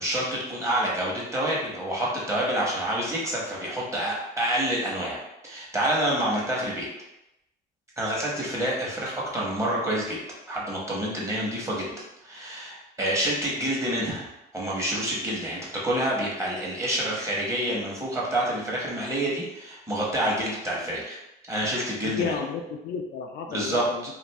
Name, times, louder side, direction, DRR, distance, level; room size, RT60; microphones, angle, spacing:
voice 1, 0.0-6.9 8.0-10.2 10.5-11.9 12.2-21.2 21.5-22.4 23.5-23.8, right 1 dB, 15° right, -5 dB, 1.0 m, -28 dB
voice 2, 22.0-24.1, left 6 dB, 65° left, 3 dB, 0.4 m, -32 dB
2.5 x 2.5 x 3.2 m, 0.91 s
cardioid pair, 110°, 17 cm